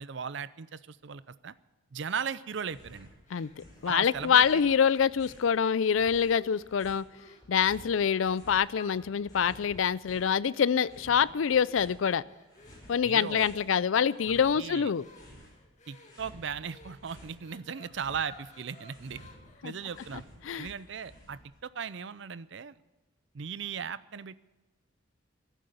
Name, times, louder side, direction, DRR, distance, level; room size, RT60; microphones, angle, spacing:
voice 1, 0.0-1.5 1.9-3.1 3.9-4.6 13.0-13.5 14.3-14.9 15.9-19.2 19.6-20.2 20.6-22.8 23.3-24.4, right 6 dB, 65° right, 17 dB, 0.5 m, -37 dB
sound 1, 2.6-3.1 3.4-5.5 5.9-8.6 8.9-10.4 10.8-12.0 12.5-13.6 14.0-15.6 15.9-17.4 17.7-21.6, equal, 20° left, 5.7 m, -53 dB
sound 2, 3.3-5.9 6.3-6.8 7.1-7.5 7.9-8.3 8.7-20.3, left 3 dB, 35° left, 2.2 m, -56 dB
voice 2, 3.8-7.0 7.5-12.2 12.9-15.0 19.6-19.7 20.4-20.7, left 7 dB, 80° left, 19 dB, 0.4 m, -25 dB
14.0 x 11.0 x 7.8 m, 1.1 s
head